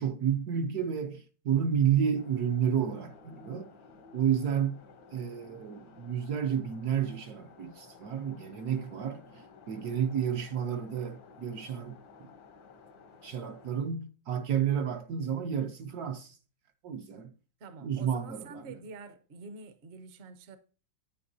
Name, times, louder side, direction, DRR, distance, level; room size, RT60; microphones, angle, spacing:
voice 1, 0.0-3.8 4.1-4.8 5.1-12.0 13.2-16.4 16.8-17.3 17.8-18.8, right 8 dB, 65° right, 1.1 m, -31 dB
sound 1, 2.2-13.8, left 4 dB, 85° left, 1.8 m, -55 dB
voice 2, 17.6-20.6, right 3 dB, 50° right, 0.9 m, -47 dB
9.3 x 8.8 x 2.6 m
omnidirectional pair, 2.0 m